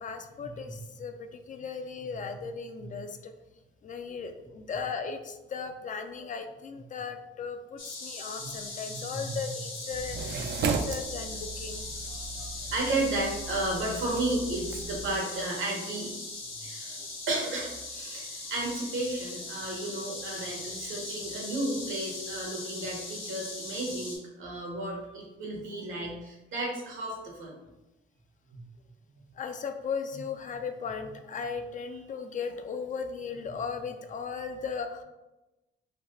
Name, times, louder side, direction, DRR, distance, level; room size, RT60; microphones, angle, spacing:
voice 1, 0.0-3.3 3.8-11.9 29.4-35.0, left 5 dB, 40° left, 7 dB, 0.4 m, -37 dB
sound 1, 7.8-24.2, left 3 dB, 75° left, 1.1 m, -40 dB
voice 2, 9.1-9.5 10.3-10.4 11.4-11.5 12.0-16.1 16.6-17.0 17.3-27.6 28.5-28.6, right 2 dB, 80° right, -2 dB, 1.1 m, -33 dB
sound 2, 9.9-15.2, right 5 dB, 60° right, 0.4 m, -36 dB
3.2 x 2.9 x 2.7 m, 1.0 s
cardioid pair, 90°, 20 cm